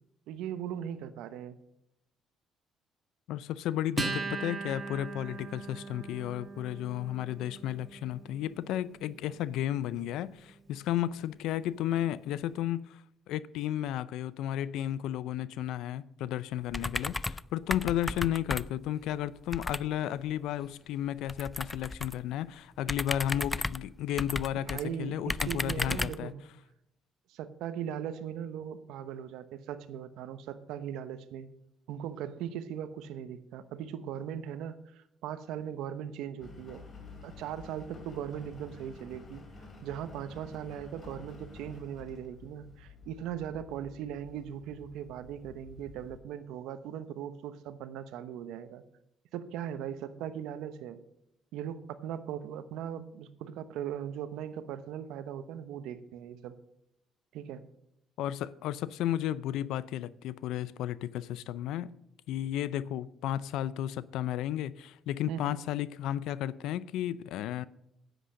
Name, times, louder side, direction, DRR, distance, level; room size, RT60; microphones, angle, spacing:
voice 1, 0.3-1.6 24.6-26.4 27.3-31.5 31.9-36.8 37.2-39.4 39.8-48.8 49.3-51.0 51.5-56.6 57.3-57.6 65.3-65.6, right 9 dB, 85° right, 0.9 m, -39 dB
voice 2, 3.3-13.0 13.3-26.3 58.2-61.9 62.3-67.7, left 12 dB, 80° left, 0.5 m, -33 dB
Acoustic guitar, 4.0-10.8, right 3 dB, 20° right, 2.1 m, -40 dB
sound 1, 16.7-17.5 17.7-18.9 19.5-19.9 21.3-22.2 22.8-24.8 25.3-26.2, left 2 dB, 15° left, 0.3 m, -34 dB
Engine, 36.4-46.2, left 3 dB, 40° left, 2.7 m, -50 dB
10.0 x 8.1 x 6.4 m
cardioid pair, 90°, 0 cm